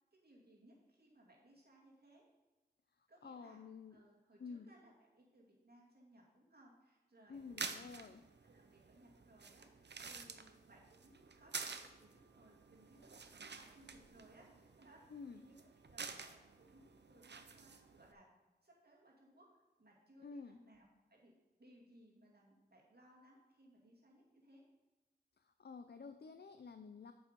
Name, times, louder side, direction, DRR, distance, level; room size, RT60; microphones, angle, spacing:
voice 1, 0.1-2.2 3.1-3.6 3.9-8.0 8.4-18.3 18.6-19.5 19.8-21.3 21.6-24.6, right 1 dB, 65° right, -3 dB, 2.3 m, -65 dB
voice 2, 3.2-4.0 4.4-4.7 7.3-8.2 15.1-15.4 20.2-20.6 25.4-27.1, left 5 dB, 70° left, 8 dB, 0.4 m, -51 dB
sound 1, 7.3-18.1, right 4 dB, 80° right, 0.6 m, -50 dB
8.0 x 5.5 x 5.2 m, 1.1 s
wide cardioid pair, 45°, 17 cm